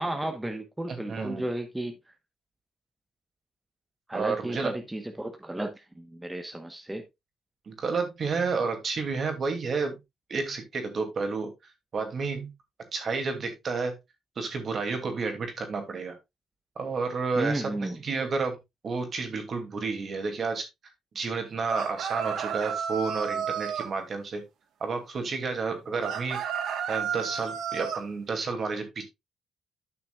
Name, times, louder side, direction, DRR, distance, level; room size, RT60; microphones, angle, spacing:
voice 1, 0.0-1.9 4.1-7.0 17.4-18.0, right 1 dB, 10° right, 1.1 m, -33 dB
voice 2, 0.9-1.5 4.1-4.7 7.7-10.0 10.3-12.5 12.9-13.9 14.4-16.2 16.8-18.6 18.8-20.6 21.1-24.4 24.8-26.4 26.9-29.0, right 4 dB, 50° right, 2.5 m, -31 dB
sound 1, 21.7-23.9 26.0-28.0, right 8 dB, 75° right, 1.3 m, -32 dB
11.5 x 5.9 x 2.4 m
cardioid pair, 90°, 0 cm